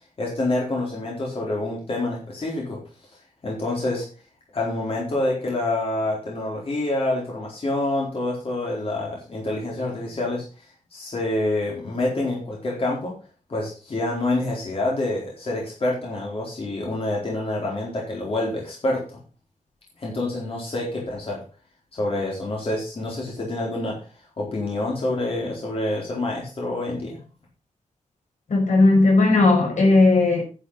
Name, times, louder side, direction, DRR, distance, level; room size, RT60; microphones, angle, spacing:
voice 1, 0.2-2.8 3.4-4.0 4.5-10.5 10.9-13.1 13.5-19.2 20.0-21.4 21.9-24.0 24.4-27.2, left 2 dB, 50° left, 4.2 m, -27 dB
voice 2, 28.5-30.4, left 2 dB, 75° left, 5.7 m, -16 dB
10.5 x 7.1 x 5.7 m
wide cardioid pair, 145°, 13 cm